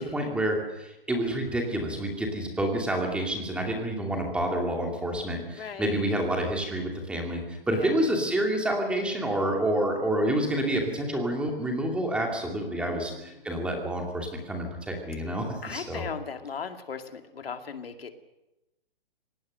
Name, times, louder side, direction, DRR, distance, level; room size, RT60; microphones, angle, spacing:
voice 1, 0.0-16.0, right 1 dB, 5° right, 1 dB, 2.6 m, -28 dB
voice 2, 5.6-6.0 7.7-8.0 12.8-13.5 15.6-18.1, left 6 dB, 85° left, 6 dB, 2.5 m, -38 dB
26.0 x 18.5 x 6.6 m, 0.97 s
hypercardioid pair, 160°, 29 cm